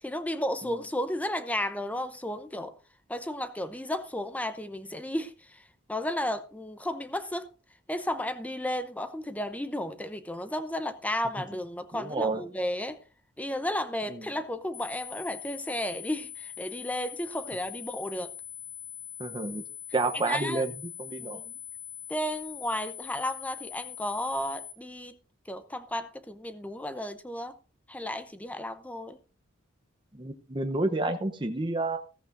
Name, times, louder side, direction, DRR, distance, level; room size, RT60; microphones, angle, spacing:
voice 1, 0.0-2.8 3.1-7.5 7.9-13.0 13.4-18.3 20.3-20.6 21.2-21.5 22.1-25.2 25.5-27.6 27.9-29.2, left 1 dB, 5° left, 0.6 m, -33 dB
voice 2, 11.9-12.4 19.2-19.6 19.9-20.7 21.0-21.4 30.1-32.0, right 2 dB, 25° right, 0.8 m, -29 dB
sound 1, 14.7-24.7, left 10 dB, 80° left, 2.0 m, -42 dB
14.5 x 14.0 x 2.6 m
head